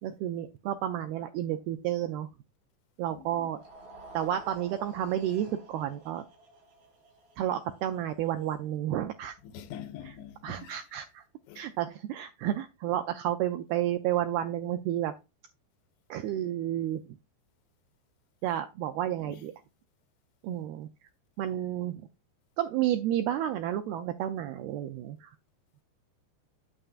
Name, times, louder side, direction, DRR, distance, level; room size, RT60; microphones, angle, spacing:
voice 1, 0.0-2.3 3.0-3.6 4.1-6.2 7.4-9.4 10.0-10.2 10.4-11.2 11.6-15.1 16.1-17.0 18.4-19.5 20.4-21.1 21.4-22.0 22.6-25.4, right 11 dB, 85° right, 2.2 m, -31 dB
voice 2, 3.1-3.5 9.4-10.8 11.5-11.6 19.2-19.3, left 10 dB, 90° left, 3.1 m, -44 dB
sound 1, 3.4-9.7, right 2 dB, 60° right, 4.9 m, -52 dB
9.2 x 7.9 x 2.4 m
omnidirectional pair, 5.1 m